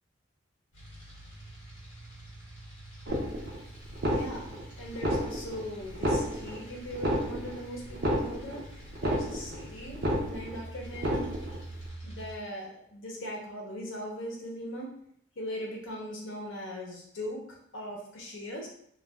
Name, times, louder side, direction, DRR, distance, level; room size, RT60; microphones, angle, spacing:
sound 1, 0.7-12.4, right 1 dB, 40° left, 1.3 m, -46 dB
sound 2, 3.1-3.6 3.9-4.6 4.9-5.6 5.9-6.6 6.9-7.6 7.9-8.6 8.9-9.6 9.9-10.6 10.9-11.6, equal, 55° right, 0.6 m, -30 dB
voice 1, 4.1-11.3 12.0-14.9 15.4-18.7, equal, 75° left, -2 dB, 0.8 m, -40 dB
2.5 x 2.3 x 3.4 m, 0.69 s
head